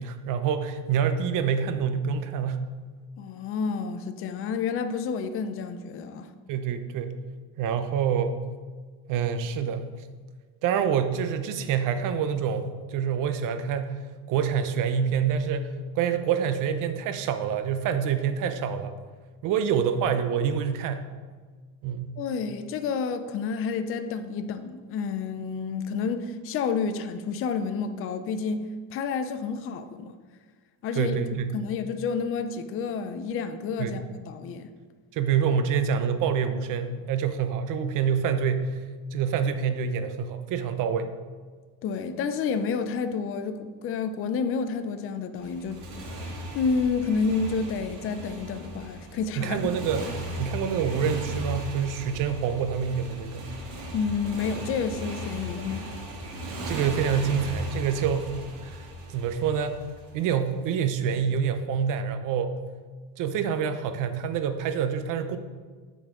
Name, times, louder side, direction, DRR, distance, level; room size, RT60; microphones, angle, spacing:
voice 1, 0.0-2.7 6.5-7.2 7.6-8.4 9.1-9.8 10.6-14.0 14.3-15.7 16.0-18.9 19.4-21.1 21.8-22.1 30.9-31.5 33.8-34.0 35.1-38.8 39.1-41.1 49.4-50.1 50.4-53.5 56.6-58.3 58.6-59.8 60.1-62.5 63.2-65.4, right 7 dB, 50° right, 0.6 m, -26 dB
voice 2, 3.2-6.3 22.2-28.6 28.9-30.2 30.8-31.2 31.5-34.7 41.8-46.1 46.5-49.8 53.9-55.9, left 5 dB, 35° left, 0.4 m, -30 dB
Motorcycle, 45.3-60.5, equal, 90° right, 1.7 m, -37 dB
9.0 x 4.1 x 3.7 m
cardioid pair, 140°, 41 cm